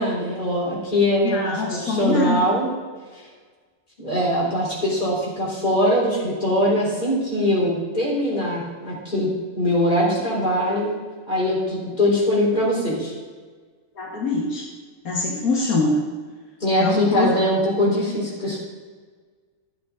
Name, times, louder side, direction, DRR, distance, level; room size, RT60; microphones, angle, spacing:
voice 1, 0.0-2.7 4.0-9.3 9.6-10.9 11.3-13.1 16.6-18.6, left 1 dB, 30° left, -6 dB, 3.8 m, -22 dB
voice 2, 1.2-2.4 14.0-14.6 15.1-16.0 16.8-17.3, left 3 dB, 75° left, -3 dB, 2.0 m, -23 dB
13.5 x 8.2 x 3.7 m, 1.5 s
omnidirectional pair, 1.5 m